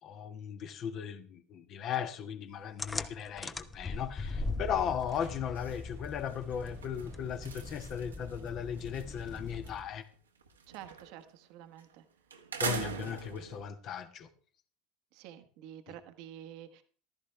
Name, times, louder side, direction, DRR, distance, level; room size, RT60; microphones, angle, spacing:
voice 1, 0.0-10.1 12.6-14.3, left 8 dB, 45° left, 1.6 m, -37 dB
sound 1, 2.8-10.0, left 3 dB, 15° left, 1.0 m, -41 dB
sound 2, 4.2-4.5 4.8-9.8 10.1-11.3 11.8-11.9 12.3-13.6, right 6 dB, 85° right, 1.8 m, -42 dB
voice 2, 10.7-12.0 12.7-13.2 15.1-16.8, right 11 dB, 60° right, 1.3 m, -49 dB
15.0 x 13.0 x 3.4 m
figure-of-eight pair, 70°, 0 cm